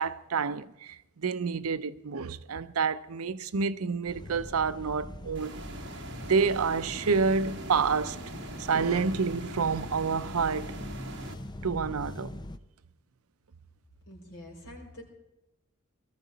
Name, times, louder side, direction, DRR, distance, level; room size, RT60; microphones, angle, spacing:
voice 1, 0.0-5.6 6.3-8.2 8.6-10.7 11.6-12.4, right 5 dB, 85° right, 0.6 m, -28 dB
sound 1, 4.1-12.6, left 1 dB, 20° left, 0.6 m, -41 dB
sound 2, 5.3-11.3, right 2 dB, 55° right, 1.7 m, -43 dB
voice 2, 14.1-15.0, left 1 dB, 65° left, 5.2 m, -46 dB
19.5 x 14.0 x 4.1 m
head